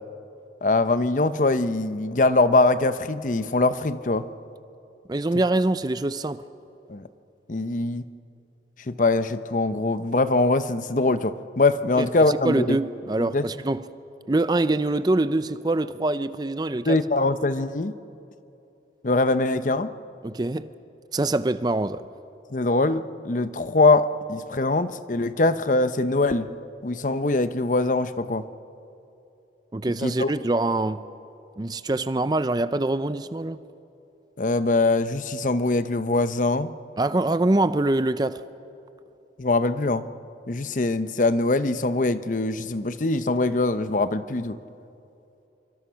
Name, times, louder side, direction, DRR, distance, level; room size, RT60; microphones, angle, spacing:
voice 1, 0.6-4.3 6.9-7.0 7.5-8.0 8.9-12.8 13.2-13.5 16.9-17.9 19.0-19.9 22.5-26.5 26.8-28.5 30.0-30.3 34.4-36.7 39.4-40.1 40.5-44.6, left 2 dB, 45° left, 0.7 m, -22 dB
voice 2, 5.1-6.4 12.0-13.8 14.3-17.0 20.2-20.7 21.1-22.1 29.7-31.1 31.6-33.6 37.0-38.4, right 2 dB, 25° right, 0.5 m, -24 dB
26.5 x 24.5 x 5.8 m
head